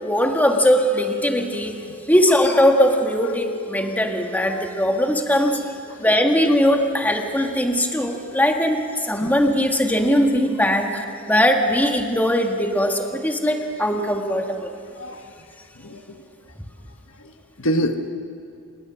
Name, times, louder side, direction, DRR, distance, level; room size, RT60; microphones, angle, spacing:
voice 1, 0.0-1.8 2.1-5.6 6.0-14.7, equal, 10° left, 3 dB, 1.8 m, -20 dB
voice 2, 15.0-15.3 15.7-16.2 17.2-18.1, equal, 65° left, 6 dB, 1.4 m, -28 dB
28.0 x 21.0 x 6.2 m, 2.6 s
head